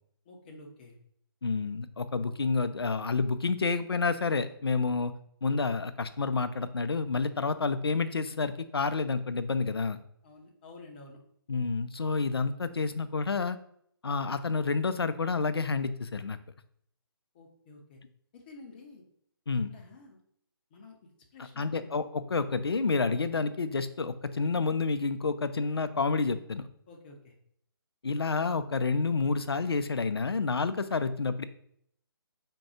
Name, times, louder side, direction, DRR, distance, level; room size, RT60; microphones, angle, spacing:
voice 1, 0.3-1.0 10.2-11.2 17.3-18.0 18.3-19.0 19.7-20.2 20.7-21.0 21.3-21.9 26.9-27.3, left 3 dB, 25° left, 1 dB, 0.6 m, -50 dB
voice 2, 1.4-5.1 5.4-10.0 11.5-13.6 14.0-16.4 19.5-19.7 21.6-26.7 28.0-31.4, left 4 dB, 75° left, 12 dB, 0.4 m, -29 dB
3.6 x 2.2 x 4.2 m, 0.68 s
figure-of-eight pair, 140°, 13 cm